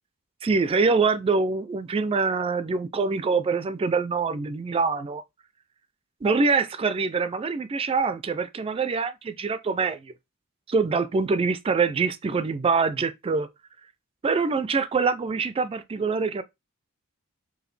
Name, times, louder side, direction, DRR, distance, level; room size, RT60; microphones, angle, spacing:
voice 1, 0.4-5.2 6.2-10.1 10.7-13.5 14.2-16.4, right 4 dB, 25° right, 0.3 m, -24 dB
4.9 x 2.6 x 3.2 m
head